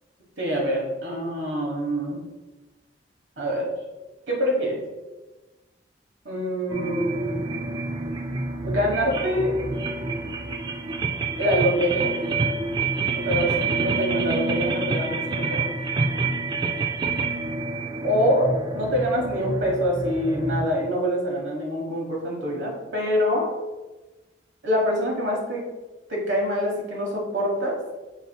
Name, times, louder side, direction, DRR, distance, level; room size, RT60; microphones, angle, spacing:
voice 1, 0.4-2.2 3.4-3.7 4.3-4.8 6.2-7.4 8.6-9.6 11.4-12.2 13.1-15.7 18.0-23.5 24.6-25.6 26.1-27.8, equal, 75° right, -1 dB, 1.2 m, -25 dB
sound 1, 6.7-20.7, right 3 dB, 25° right, 0.3 m, -27 dB
5.5 x 4.0 x 2.2 m, 1.2 s
head